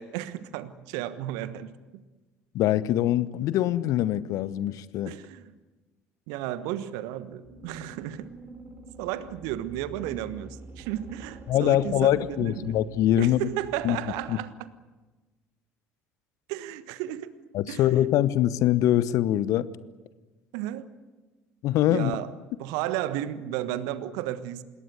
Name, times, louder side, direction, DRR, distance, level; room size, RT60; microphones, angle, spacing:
voice 1, 0.0-2.0 5.1-5.5 6.3-8.3 9.0-12.7 13.2-14.7 16.5-17.3 17.7-18.0 20.5-20.9 21.9-22.3 22.6-24.6, right 13 dB, 65° right, 14 dB, 1.3 m, -33 dB
voice 2, 2.5-5.1 11.5-13.4 13.8-14.0 14.3-14.4 17.5-19.7 21.6-22.1, left 13 dB, 55° left, 18 dB, 0.9 m, -23 dB
sound 1, 7.4-14.3, right 3 dB, 35° right, 5.9 m, -47 dB
26.5 x 21.0 x 8.0 m, 1.2 s
figure-of-eight pair, 55°, 7 cm